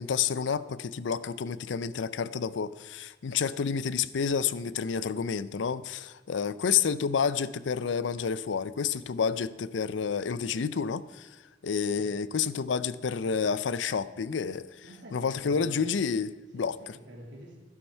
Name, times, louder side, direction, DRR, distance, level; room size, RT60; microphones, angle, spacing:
voice 1, 0.0-11.4 11.6-14.8 15.1-16.8, left 6 dB, 80° left, 16 dB, 0.5 m, -29 dB
voice 2, 14.8-15.9 16.5-17.6, right 1 dB, 75° right, -1 dB, 2.8 m, -47 dB
12.5 x 11.5 x 4.5 m, 1.3 s
head